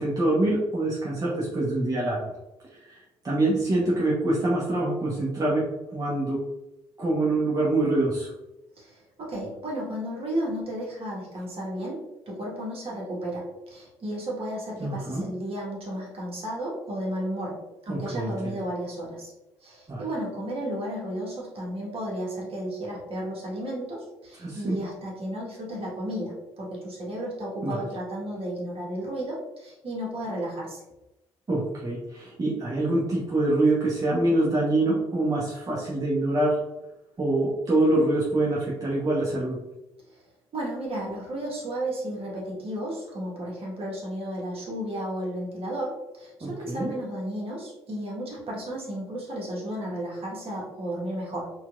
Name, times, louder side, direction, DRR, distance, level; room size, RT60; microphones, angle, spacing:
voice 1, 0.0-2.3 2.7-5.6 5.9-6.4 7.0-8.3 14.8-15.2 17.9-18.5 19.9-20.0 24.4-24.8 27.6-27.8 31.5-36.6 37.2-39.6 46.4-46.9, right 2 dB, 25° right, -6 dB, 0.9 m, -25 dB
voice 2, 8.8-19.3 19.6-30.8 40.1-40.2 40.5-51.5, right 1 dB, 45° right, -3 dB, 1.3 m, -33 dB
4.3 x 2.5 x 2.4 m, 0.96 s
figure-of-eight pair, 45°, 14 cm